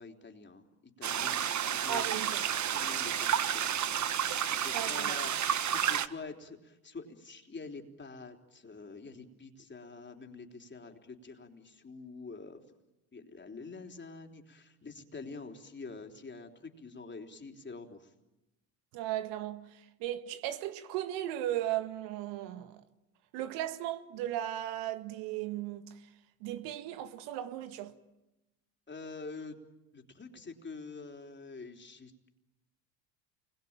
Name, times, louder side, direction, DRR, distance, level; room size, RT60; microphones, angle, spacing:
voice 1, 0.0-2.1 2.7-4.2 4.5-12.6 13.1-18.1 28.9-29.6 29.9-32.3, left 3 dB, 25° left, 3.9 m, -46 dB
sound 1, 1.0-6.1, right 9 dB, 40° right, 1.4 m, -31 dB
voice 2, 1.9-2.4 4.7-5.2 18.9-22.8 23.3-25.9 26.4-27.9, right 12 dB, 70° right, 1.9 m, -36 dB
29.0 x 22.5 x 9.0 m
hypercardioid pair, 75°, 44 cm